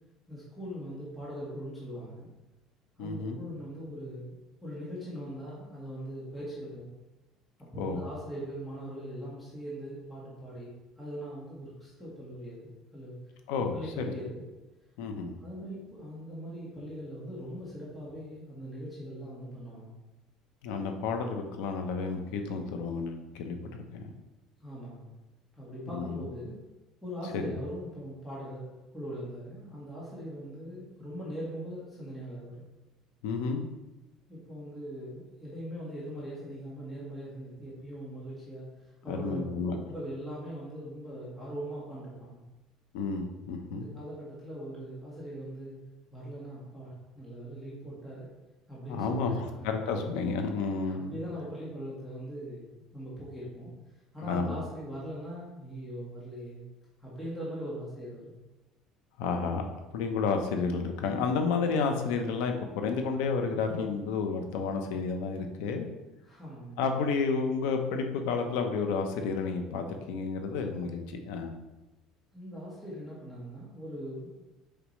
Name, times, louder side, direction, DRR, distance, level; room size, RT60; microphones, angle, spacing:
voice 1, 0.3-2.3 3.0-4.3 4.6-6.9 7.6-10.7 11.0-13.2 13.6-14.4 15.4-19.9 24.6-25.1 25.5-26.6 27.0-32.6 34.3-38.7 39.0-42.4 43.7-45.8 46.1-48.3 48.7-49.7 50.9-53.7 54.1-56.6 57.0-58.3 66.2-66.8 72.3-74.3, equal, 10° left, -8 dB, 1.6 m, -41 dB
voice 2, 3.0-3.4 7.8-8.0 13.5-14.1 15.0-15.3 20.6-23.6 23.9-24.1 25.9-26.2 27.3-27.6 33.2-33.6 39.1-39.8 42.9-43.9 48.9-51.2 54.3-54.6 59.2-65.9 66.8-71.5, left 4 dB, 85° left, 5 dB, 0.9 m, -31 dB
6.8 x 5.1 x 3.2 m, 1.1 s
cardioid pair, 150°, 0 cm